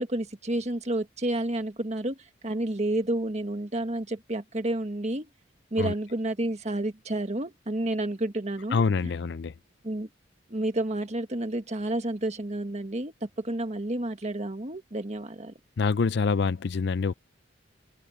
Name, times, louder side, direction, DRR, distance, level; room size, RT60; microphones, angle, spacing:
voice 1, 0.0-5.3 5.7-8.8 9.8-10.1 10.5-15.5, right 1 dB, 35° right, 1.6 m, -30 dB
voice 2, 8.7-9.5 15.8-17.1, left 4 dB, 60° left, 0.5 m, -25 dB
open air
head